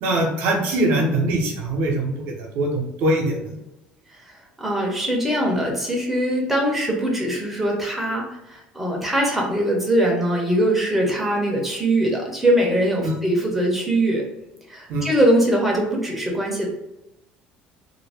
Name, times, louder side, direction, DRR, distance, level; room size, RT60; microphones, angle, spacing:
voice 1, 0.0-3.4 13.0-13.2 14.9-15.1, right 1 dB, 65° right, 1 dB, 0.8 m, -22 dB
voice 2, 4.1-14.2 14.7-16.7, right 1 dB, 5° right, -2 dB, 0.8 m, -22 dB
2.6 x 2.1 x 3.3 m, 0.91 s
cardioid pair, 145°, 3 cm